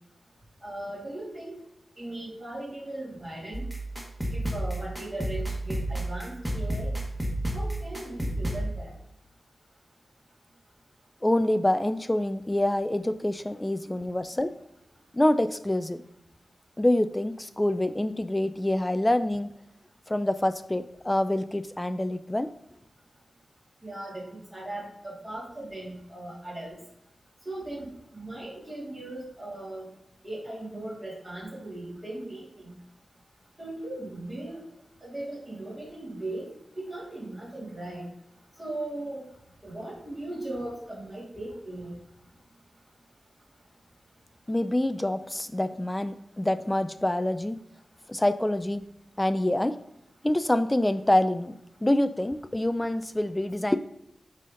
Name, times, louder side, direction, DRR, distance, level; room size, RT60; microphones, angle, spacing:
voice 1, 0.6-1.5 2.0-3.6 4.3-6.9 7.5-8.9 23.8-26.7 27.4-29.9 30.2-32.7 33.6-34.6 35.0-36.5 36.8-38.1 38.6-39.3 39.6-42.0, right 1 dB, 25° right, -6 dB, 2.8 m, -38 dB
sound 1, 3.5-8.6, right 1 dB, 10° right, 1.6 m, -31 dB
voice 2, 11.2-14.5 15.1-16.0 16.8-19.5 20.1-22.5 44.5-47.6 48.1-48.9 49.2-49.7 50.2-53.8, left 1 dB, 15° left, 12 dB, 0.3 m, -26 dB
10.0 x 4.2 x 3.8 m, 0.79 s
wide cardioid pair, 110°, 0 cm